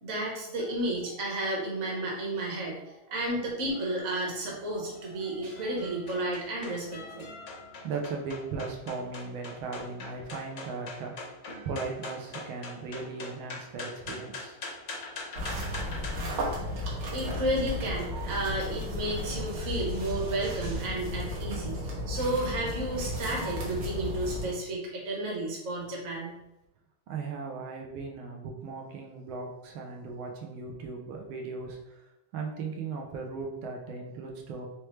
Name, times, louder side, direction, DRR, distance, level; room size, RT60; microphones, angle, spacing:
voice 1, 0.0-7.3 17.1-26.4, right 1 dB, 45° right, -3 dB, 1.3 m, -32 dB
sound 1, 4.4-16.2, left 3 dB, 70° left, 0.6 m, -43 dB
voice 2, 7.8-11.4 11.6-14.6 27.1-34.7, right 4 dB, 85° right, 1 dB, 1.5 m, -37 dB
sound 2, 15.3-24.5, left 1 dB, 65° right, 1.6 m, -34 dB
4.4 x 3.3 x 3.1 m, 0.92 s
omnidirectional pair, 2.2 m